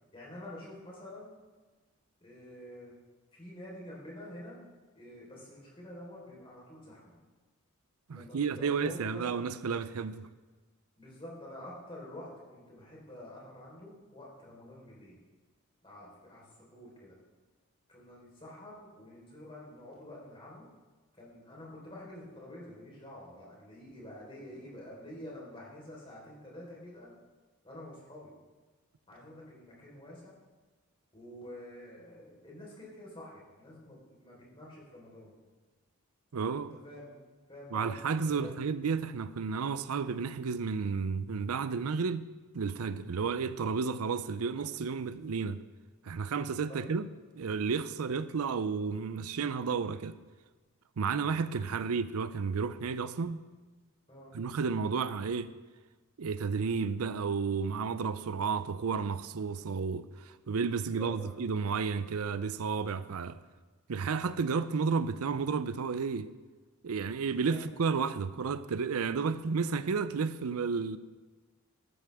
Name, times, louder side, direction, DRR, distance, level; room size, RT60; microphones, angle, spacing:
voice 1, 0.1-1.3 2.2-2.9 3.3-4.6 4.9-7.2 8.1-9.4 10.1-10.2 11.0-15.2 15.8-17.2 17.9-20.7 21.2-27.1 27.6-28.3 29.1-30.4 31.1-35.3 36.8-37.1 37.5-38.5 46.7-46.8 54.1-54.3 60.9-61.3 67.3-67.6, left 1 dB, 25° left, 4.2 m, -48 dB
voice 2, 8.1-10.3 36.3-36.8 37.7-42.3 42.5-45.6 46.0-47.1 47.3-50.2 51.0-53.4 54.3-55.5 56.2-63.4 63.9-66.3 66.8-71.0, right 5 dB, 80° right, 0.5 m, -32 dB
14.0 x 12.5 x 3.6 m
head